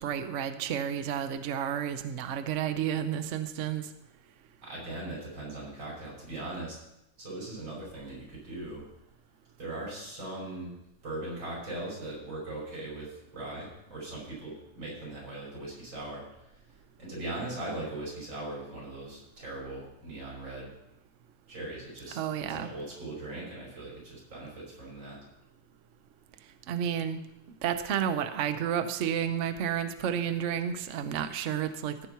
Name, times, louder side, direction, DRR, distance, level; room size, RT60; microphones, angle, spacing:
voice 1, 0.0-3.9 22.1-22.7 26.7-27.2 27.6-32.1, right 9 dB, 60° right, 9 dB, 0.8 m, -31 dB
voice 2, 4.6-6.8 7.2-8.8 9.6-10.8 11.0-16.7 17.0-20.7 21.5-22.2 22.5-25.2, right 2 dB, 90° right, -5 dB, 6.3 m, -39 dB
15.5 x 6.8 x 4.6 m, 0.87 s
omnidirectional pair, 2.0 m